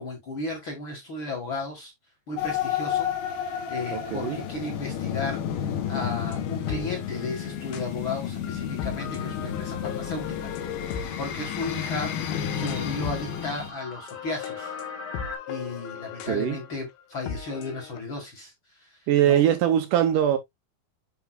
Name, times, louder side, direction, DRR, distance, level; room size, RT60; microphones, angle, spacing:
voice 1, 0.0-1.9 2.3-14.7 15.5-19.4, left 3 dB, 45° left, 1.8 m, -35 dB
sound 1, 2.4-13.7, left 9 dB, 70° left, 2.6 m, -31 dB
voice 2, 3.9-4.4 16.3-16.6 19.1-20.4, right 11 dB, 75° right, 2.1 m, -22 dB
sound 2, 6.3-7.9 8.4-13.6 13.9-18.0, left 8 dB, 85° left, 2.9 m, -38 dB
sound 3, 10.0-15.4, left 2 dB, 20° left, 1.4 m, -43 dB
8.3 x 5.2 x 2.3 m
omnidirectional pair, 4.2 m